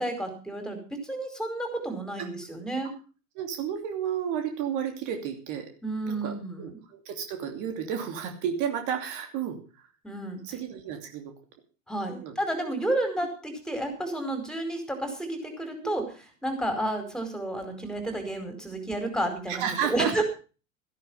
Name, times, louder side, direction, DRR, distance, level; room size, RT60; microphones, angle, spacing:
voice 1, 0.0-2.9 5.8-6.8 10.0-10.4 11.9-16.0 16.4-20.2, right 1 dB, ahead, 6 dB, 4.8 m, -31 dB
voice 2, 3.3-5.8 6.0-9.6 10.4-11.3 12.2-12.4 15.8-15.9 19.5-20.2, right 8 dB, 50° right, 5 dB, 2.9 m, -32 dB
14.0 x 11.5 x 5.6 m, 0.35 s
hypercardioid pair, 90°, 40 cm